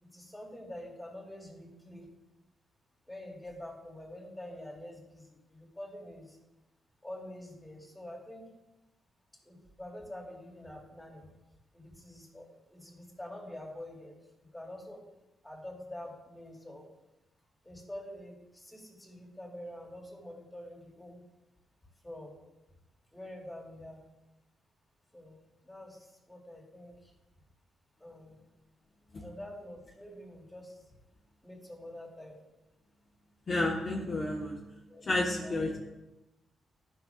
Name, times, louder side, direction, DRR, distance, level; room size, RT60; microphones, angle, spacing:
voice 1, 0.0-2.1 3.1-6.4 7.0-8.5 9.4-11.3 11.7-15.0 15.4-16.9 17.6-21.2 22.0-22.4 23.1-24.0 25.1-27.1 28.0-28.4 29.2-30.8 31.4-32.4 34.9-35.1 35.4-35.6, left 1 dB, 5° left, -2 dB, 2.4 m, -46 dB
voice 2, 33.5-34.6 35.0-35.8, left 2 dB, 40° left, -2 dB, 1.0 m, -31 dB
12.5 x 6.0 x 2.3 m, 1.0 s
cardioid pair, 100°, 0 cm